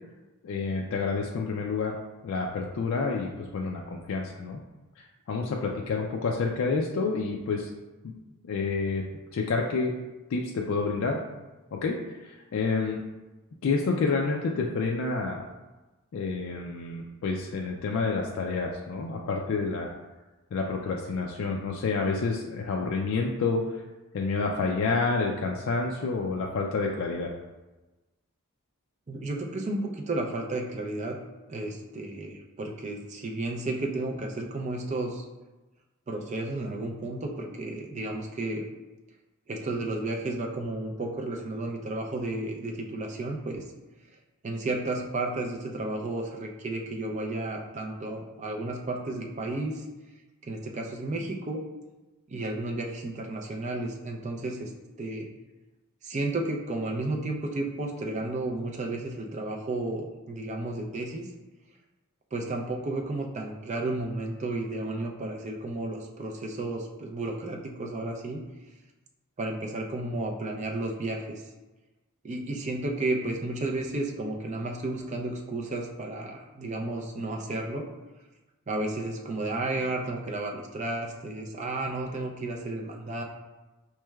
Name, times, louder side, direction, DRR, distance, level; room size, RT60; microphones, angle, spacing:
voice 1, 0.4-2.0 2.2-4.6 5.3-7.7 8.0-8.1 8.4-9.0 9.3-10.0 10.3-11.2 11.7-13.0 13.6-15.4 16.1-19.9 20.5-23.6 24.1-27.3, left 4 dB, 60° left, 0 dB, 0.3 m, -29 dB
voice 2, 29.1-31.2 31.5-35.2 36.1-38.7 39.5-43.6 44.4-49.8 50.4-51.6 52.3-54.7 55.0-55.3 56.0-61.3 62.3-68.4 69.4-71.4 72.2-77.8 78.7-83.2, right 2 dB, 30° right, 1 dB, 0.4 m, -32 dB
4.4 x 3.1 x 2.2 m, 1.1 s
head